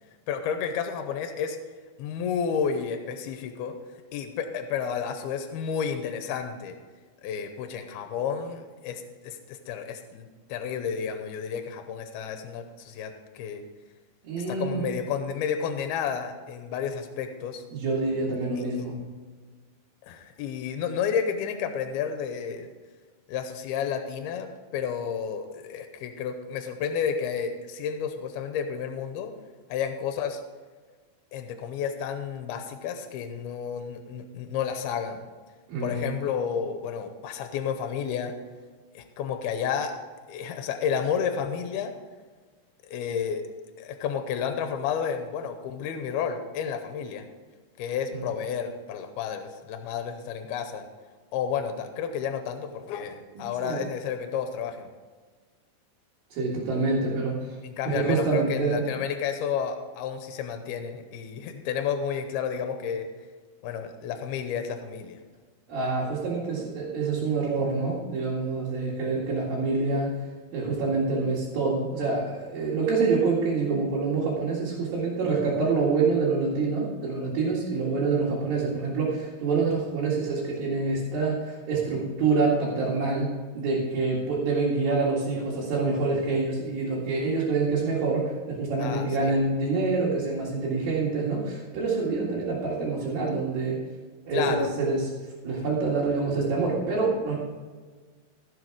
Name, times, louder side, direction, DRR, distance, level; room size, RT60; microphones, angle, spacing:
voice 1, 0.3-1.6 2.0-3.7 4.1-6.8 7.2-13.6 14.4-17.7 18.7-18.9 20.0-22.7 23.3-29.3 29.7-30.4 31.3-35.3 35.8-38.3 38.9-39.9 40.3-41.9 42.8-43.4 43.8-47.3 47.8-50.9 51.3-54.9 57.6-63.1 63.6-65.2 88.8-89.3 94.3-94.7, left 7 dB, 90° left, 7 dB, 2.7 m, -31 dB
voice 2, 14.2-14.8 17.7-19.0 35.7-36.1 48.1-48.2 53.4-53.8 56.3-57.4 57.9-58.8 65.7-70.1 70.5-93.8 94.3-95.1 95.4-97.4, right 4 dB, 70° right, -6 dB, 3.7 m, -26 dB
15.5 x 7.2 x 4.7 m, 1.4 s
omnidirectional pair, 4.5 m